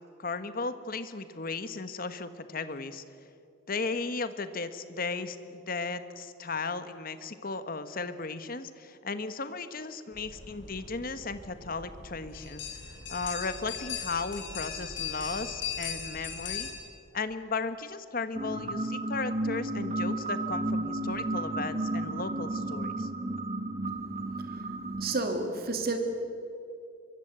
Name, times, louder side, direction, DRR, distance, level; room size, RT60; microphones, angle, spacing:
voice 1, 0.2-3.0 3.7-16.7 17.1-23.1, left 4 dB, 50° left, 11 dB, 1.3 m, -36 dB
sound 1, 10.1-16.7, left 7 dB, 75° left, 6.1 m, -39 dB
sound 2, 18.3-25.1, right 2 dB, 35° right, 1.8 m, -33 dB
voice 2, 24.3-26.0, right 3 dB, 50° right, 5 dB, 2.8 m, -32 dB
24.5 x 23.0 x 8.2 m, 2.6 s
head